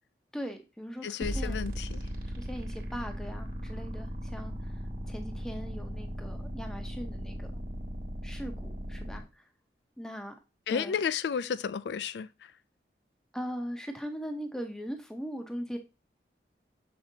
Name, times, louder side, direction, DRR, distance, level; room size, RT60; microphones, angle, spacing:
voice 1, 0.3-1.6 2.3-7.5 8.2-9.5 10.0-10.3 10.7-11.0 13.3-15.8, equal, 5° left, 0.7 m, -40 dB
voice 2, 1.0-2.0 10.7-12.5, left 7 dB, 80° left, 0.3 m, -32 dB
sound 1, 1.2-9.2, equal, 50° right, 1.4 m, -37 dB
6.9 x 5.2 x 2.7 m
head